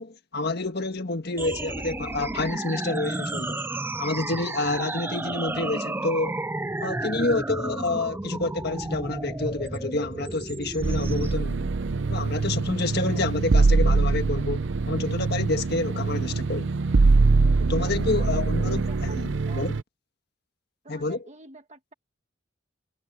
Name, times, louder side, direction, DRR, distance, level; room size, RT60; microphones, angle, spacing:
voice 1, 0.0-3.6 4.0-6.4 6.8-11.6 12.1-16.7 17.6-19.2 19.5-19.8 20.9-21.2, left 2 dB, 50° left, 1.6 m, -28 dB
sound 1, 1.4-11.4, right 2 dB, 10° right, 0.4 m, -32 dB
sound 2, 10.8-19.8, right 3 dB, 60° right, 0.6 m, -23 dB
voice 2, 17.8-19.2 19.4-19.7 20.8-21.9, right 2 dB, 35° right, 1.5 m, -47 dB
head